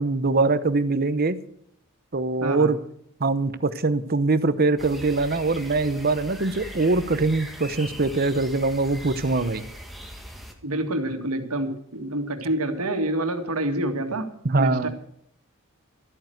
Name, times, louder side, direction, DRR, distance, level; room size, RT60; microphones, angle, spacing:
voice 1, 0.0-1.4 2.1-2.8 3.2-9.6 14.4-14.9, right 3 dB, 45° right, 14 dB, 0.9 m, -23 dB
voice 2, 2.4-2.7 10.6-14.3 14.6-14.9, right 1 dB, 90° right, 6 dB, 2.0 m, -27 dB
sound 1, 4.8-10.5, equal, ahead, 1.7 m, -40 dB
13.5 x 9.0 x 7.8 m, 0.68 s
head